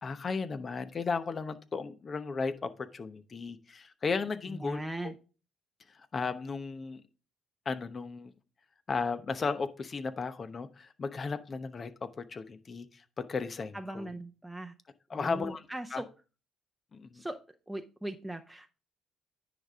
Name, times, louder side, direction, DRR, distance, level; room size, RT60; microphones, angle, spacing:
voice 1, 0.0-5.1 6.1-7.0 7.7-8.3 8.9-14.1 15.1-15.7 15.9-16.0 16.9-17.2, left 4 dB, 40° left, 12 dB, 0.8 m, -35 dB
voice 2, 4.5-5.1 13.7-14.7 15.1-16.1 17.1-17.4 17.7-18.7, right 1 dB, 5° right, 4 dB, 0.8 m, -39 dB
9.9 x 5.0 x 3.6 m, 0.33 s
hypercardioid pair, 50°, 0 cm